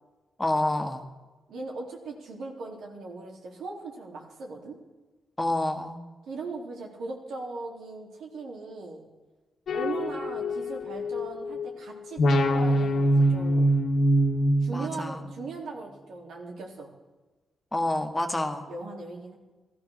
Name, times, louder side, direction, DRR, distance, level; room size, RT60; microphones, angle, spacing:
voice 1, 0.4-1.0 5.4-6.0 14.7-15.2 17.7-18.6, left 1 dB, 15° left, 5 dB, 1.9 m, -28 dB
voice 2, 1.5-4.8 6.2-9.0 9.7-13.7 14.6-16.9 18.2-19.4, right 3 dB, 85° right, 0 dB, 3.7 m, -39 dB
sound 1, 9.7-11.7 12.2-15.4, equal, 70° left, 1.6 m, -24 dB
16.0 x 13.5 x 6.6 m, 1.2 s
cardioid pair, 85°, 0 cm